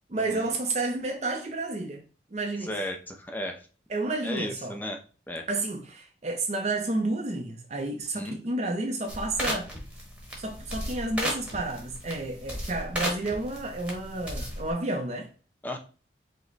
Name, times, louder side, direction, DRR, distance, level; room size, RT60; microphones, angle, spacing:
voice 1, 0.1-2.0 2.3-2.8 3.9-4.8 5.5-9.7 10.4-15.3, right 2 dB, 35° right, 0.5 m, -31 dB
voice 2, 2.7-3.6 4.2-5.0 5.3-5.4 8.2-8.4 15.6-15.8, left 1 dB, 10° left, 0.5 m, -34 dB
sound 1, 9.1-14.7, equal, 5° right, 1.0 m, -35 dB
4.9 x 2.2 x 3.9 m
head